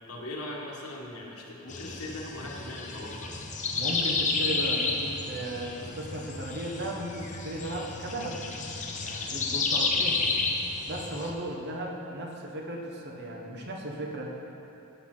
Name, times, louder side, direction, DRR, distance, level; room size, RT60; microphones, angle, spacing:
voice 1, 0.1-3.3, left 1 dB, 75° left, -3 dB, 1.6 m, -39 dB
sound 1, 1.7-11.3, left 4 dB, 35° left, 0.8 m, -31 dB
voice 2, 3.7-8.4 9.0-10.2 10.9-14.3, right 1 dB, 50° right, 0 dB, 1.2 m, -36 dB
15.5 x 6.1 x 3.9 m, 2.9 s
head